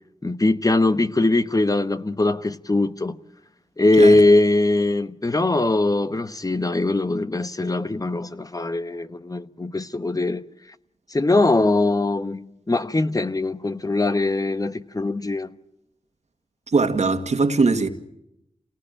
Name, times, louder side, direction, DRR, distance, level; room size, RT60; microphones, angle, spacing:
voice 1, 0.2-3.1 3.8-10.4 11.1-15.5, left 2 dB, 30° left, 1.1 m, -21 dB
voice 2, 16.7-17.9, right 4 dB, 65° right, 2.0 m, -20 dB
27.0 x 18.5 x 8.9 m
cardioid pair, 50°, 12 cm